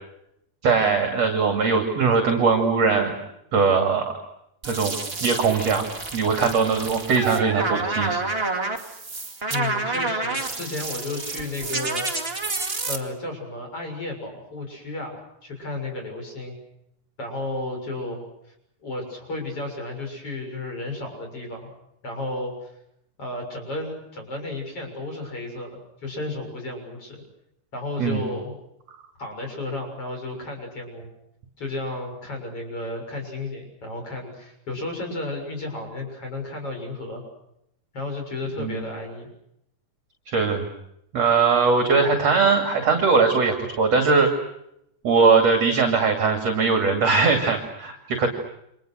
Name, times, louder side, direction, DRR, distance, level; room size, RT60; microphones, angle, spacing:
voice 1, 0.6-3.1 3.5-4.1 4.6-4.9 5.2-5.9 6.1-8.2 28.0-28.2 38.6-38.8 40.3-40.6 41.1-44.3 45.0-48.3, right 4 dB, 45° right, 5 dB, 3.4 m, -20 dB
sound 1, 4.6-13.0, right 3 dB, 20° right, 1.9 m, -29 dB
voice 2, 9.5-12.4 12.9-16.6 17.2-18.2 18.8-21.7 22.0-22.7 23.2-27.2 27.7-28.6 29.2-31.1 31.6-37.2 37.9-39.3, left 2 dB, 35° left, 3 dB, 7.8 m, -33 dB
30.0 x 26.5 x 6.5 m, 0.80 s
omnidirectional pair, 4.5 m